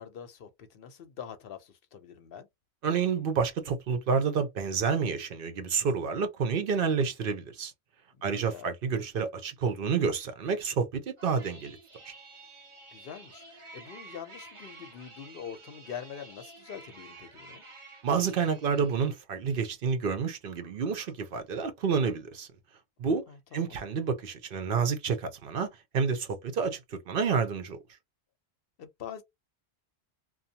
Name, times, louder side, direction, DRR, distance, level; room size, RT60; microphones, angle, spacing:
voice 1, 0.0-2.5 8.1-8.8 12.9-17.6 23.3-23.8 28.8-29.2, left 8 dB, 65° left, 0.8 m, -44 dB
voice 2, 2.8-7.7 8.2-11.8 12.0-12.1 18.0-22.5 23.0-23.2 23.5-25.7 25.9-27.8, right 5 dB, 60° right, 0.7 m, -29 dB
sound 1, 11.2-19.2, right 2 dB, 30° right, 1.0 m, -51 dB
2.6 x 2.2 x 2.7 m
omnidirectional pair, 1.1 m